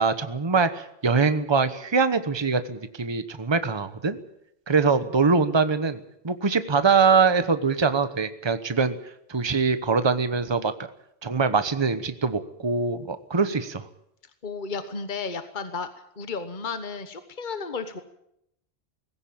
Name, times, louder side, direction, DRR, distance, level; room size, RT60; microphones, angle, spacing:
voice 1, 0.0-4.2 4.7-9.0 9.3-10.7 11.2-13.8, right 5 dB, 25° right, 11 dB, 1.1 m, -23 dB
voice 2, 14.4-15.9 16.2-18.0, left 4 dB, 50° left, 9 dB, 1.4 m, -33 dB
20.0 x 16.5 x 8.7 m, 0.78 s
omnidirectional pair, 1.1 m